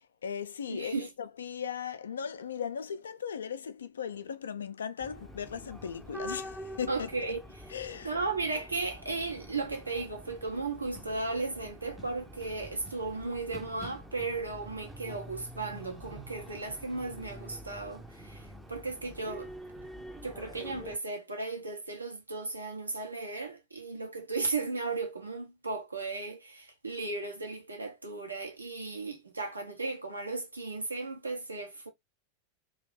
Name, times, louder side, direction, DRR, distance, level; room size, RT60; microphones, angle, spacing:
voice 1, 0.0-7.3 7.7-8.1, left 7 dB, 70° left, 0.3 m, -38 dB
voice 2, 0.7-1.1 6.9-7.4 8.0-19.5 20.2-31.9, right 3 dB, 80° right, 0.8 m, -35 dB
sound 1, 5.0-21.0, equal, 5° right, 0.5 m, -46 dB
2.6 x 2.3 x 3.3 m
figure-of-eight pair, 90°, 0 cm